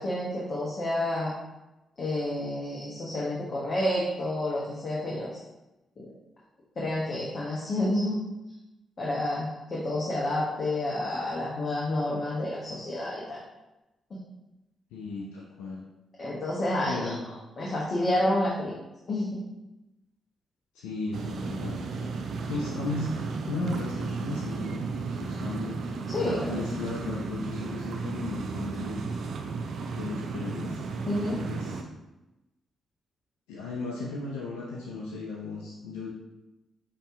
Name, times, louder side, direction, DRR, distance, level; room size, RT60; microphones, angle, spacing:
voice 1, 0.0-1.3 2.0-5.3 6.0-6.1 6.8-8.2 9.0-13.4 14.1-14.2 16.2-17.1 17.6-18.7 19.1-19.3 26.1-26.6 31.1-31.4, left 1 dB, 55° left, -5 dB, 1.1 m, -29 dB
voice 2, 14.9-15.8 16.9-17.3 20.7-21.8 22.5-23.2 23.5-24.8 25.2-25.8 26.2-29.2 29.9-30.8 31.1-31.8 33.5-36.1, left 3 dB, 90° left, -3 dB, 0.5 m, -35 dB
sound 1, 21.1-31.8, right 4 dB, 70° right, 0.5 m, -34 dB
5.3 x 2.9 x 3.5 m, 0.99 s
hypercardioid pair, 50°, 0 cm